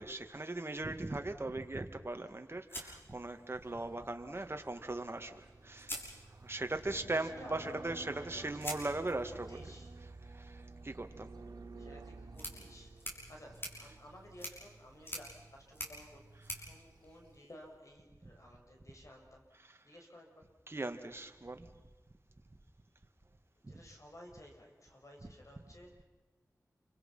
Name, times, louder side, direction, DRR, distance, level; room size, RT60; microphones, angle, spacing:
voice 1, 0.0-6.0 6.4-9.6 10.0-11.3 13.8-13.9 16.4-16.6 18.2-18.3 19.6-19.8 20.7-21.7 23.6-23.7 25.2-25.3, right 2 dB, 40° right, 6 dB, 2.2 m, -39 dB
sound 1, 2.7-3.8 5.2-5.3 5.8-6.8 8.6-17.8, equal, 35° left, 6.4 m, -48 dB
sound 2, 3.6-17.4, right 3 dB, 85° right, 2.2 m, -53 dB
voice 2, 7.2-8.5 9.2-9.9 11.8-16.2 16.6-19.5 19.8-20.5 23.6-26.0, left 1 dB, 55° left, 1 dB, 6.1 m, -55 dB
28.5 x 25.0 x 5.8 m, 1.2 s
wide cardioid pair, 50°, 7 cm